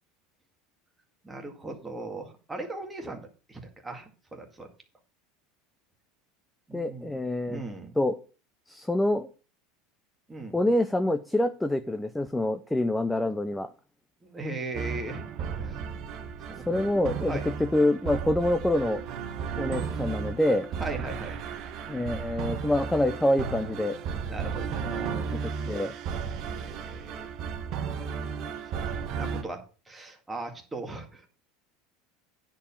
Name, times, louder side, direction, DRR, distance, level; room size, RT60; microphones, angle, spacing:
voice 1, 1.2-3.2 3.5-4.7 6.7-7.2 7.5-8.0 10.3-10.6 14.2-15.2 15.5-15.8 16.5-16.9 17.3-17.5 20.8-21.5 24.3-25.4 26.5-27.3 28.4-28.5 28.8-31.3, right 2 dB, 10° right, 3 dB, 2.0 m, -39 dB
voice 2, 6.7-7.6 8.0-8.1 8.7-9.3 10.5-13.7 16.7-17.4 17.7-19.0 19.6-20.7 21.9-24.0 24.9-25.2 25.7-25.9, left 1 dB, 5° left, 10 dB, 0.5 m, -26 dB
sound 1, 14.7-29.4, right 6 dB, 45° right, 1.2 m, -34 dB
9.9 x 4.7 x 7.1 m, 0.36 s
supercardioid pair, 150°, 0 cm